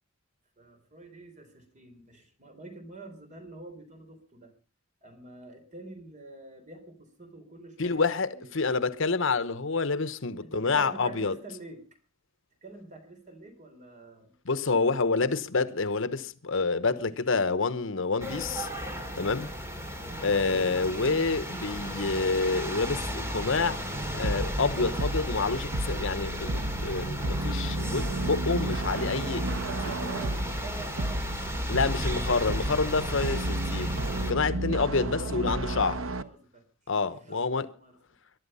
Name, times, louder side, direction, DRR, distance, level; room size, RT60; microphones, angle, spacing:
voice 1, 0.6-4.5 5.0-8.5 10.4-11.9 12.6-14.3 25.1-25.3 29.2-32.9 34.6-36.6 37.0-38.0, right 3 dB, 35° right, 3.6 m, -47 dB
voice 2, 7.8-11.3 14.4-18.7 19.1-19.5 20.2-23.8 24.1-29.5 31.7-34.0 34.3-35.9 36.9-37.7, left 4 dB, 65° left, 1.0 m, -28 dB
sound 1, 18.2-34.3, equal, 15° right, 2.7 m, -35 dB
sound 2, 24.2-36.2, right 1 dB, 75° right, 1.1 m, -32 dB
21.5 x 12.0 x 5.5 m
head